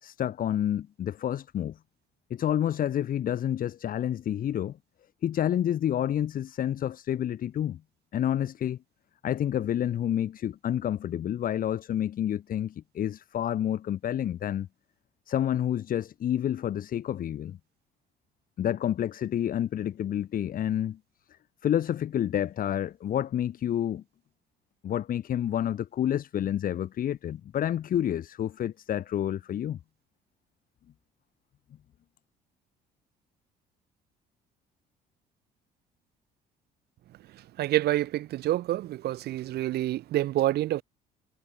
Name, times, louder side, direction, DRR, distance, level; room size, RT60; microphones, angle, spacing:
voice 1, 0.0-1.8 2.3-4.8 5.2-7.8 8.1-8.8 9.2-14.7 15.3-17.6 18.6-21.0 21.6-24.0 24.8-29.8, left 10 dB, 55° left, 4.0 m, -29 dB
voice 2, 37.3-40.8, right 14 dB, 70° right, 3.6 m, -28 dB
cardioid pair, 110°, 17 cm